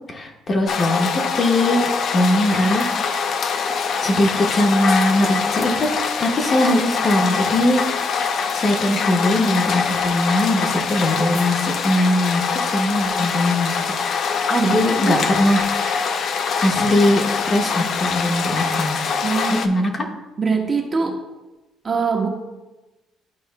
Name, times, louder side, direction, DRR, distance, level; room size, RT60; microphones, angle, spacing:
voice 1, 0.1-1.1 1.3-2.9 4.0-5.9 6.2-7.8 8.5-13.9 14.3-14.5 14.7-16.0 16.6-19.0 19.5-20.1, left 1 dB, 35° left, 2 dB, 1.1 m, -20 dB
sound 1, 0.7-19.7, left 5 dB, 55° left, 0.5 m, -24 dB
voice 2, 14.5-15.2 19.2-19.7 20.4-21.2 21.8-22.3, right 5 dB, 30° right, 1 dB, 0.8 m, -22 dB
12.5 x 4.6 x 2.2 m, 1.1 s
cardioid pair, 130°, 0 cm